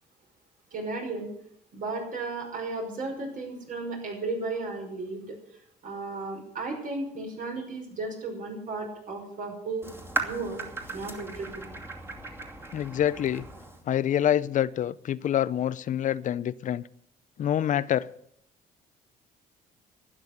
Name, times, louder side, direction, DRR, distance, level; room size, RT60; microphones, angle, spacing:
voice 1, 0.7-1.3 1.7-5.4 5.8-9.9 10.2-10.6 10.9-11.7, right 3 dB, 50° right, 5.4 m, -34 dB
sound 1, 9.8-13.8, right 3 dB, 15° right, 2.5 m, -37 dB
voice 2, 12.7-13.5 13.9-16.8 17.4-18.1, left 10 dB, 50° left, 0.7 m, -26 dB
12.5 x 10.5 x 8.0 m
cardioid pair, 110°, 17 cm